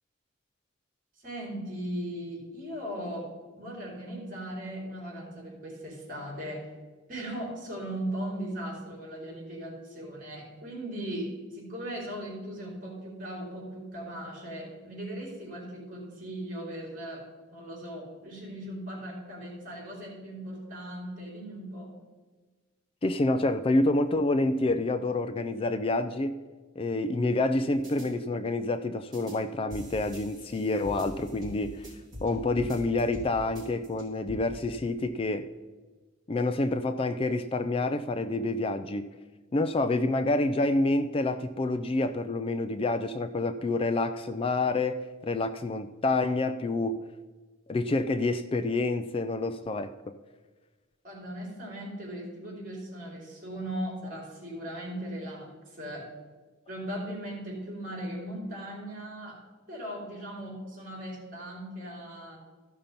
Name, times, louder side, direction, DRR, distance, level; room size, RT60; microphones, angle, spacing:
voice 1, 1.2-6.7 7.1-21.9 51.0-56.1 56.7-62.4, right 1 dB, 40° right, -2 dB, 3.9 m, -38 dB
voice 2, 23.0-26.4 26.8-31.9 32.2-35.5 36.3-39.1 39.5-47.0 47.7-49.9, left 2 dB, 25° left, 10 dB, 0.3 m, -28 dB
sound 1, 27.8-28.1 29.1-29.4 29.7-32.3 32.5-33.3 33.5-34.3, equal, 20° right, 3.7 m, -43 dB
14.5 x 5.7 x 5.2 m, 1.3 s
head